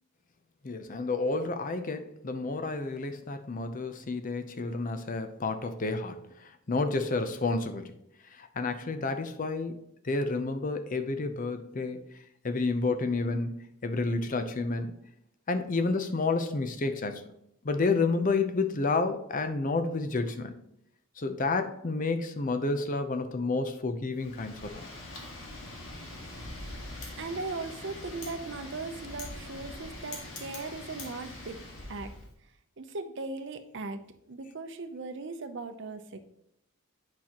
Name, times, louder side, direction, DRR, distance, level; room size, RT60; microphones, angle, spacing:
voice 1, 0.6-6.2 6.7-7.9 8.4-9.8 10.0-12.0 12.4-13.5 13.8-14.9 15.5-17.2 17.6-20.5 21.2-24.8, left 3 dB, 40° left, 8 dB, 0.6 m, -30 dB
Wind, 24.1-32.3, left 2 dB, 80° left, 1.8 m, -43 dB
voice 2, 27.2-31.6 31.9-32.1 32.8-34.0 34.3-36.2, right 3 dB, 60° right, 8 dB, 0.7 m, -38 dB
8.8 x 5.8 x 2.9 m, 0.78 s
head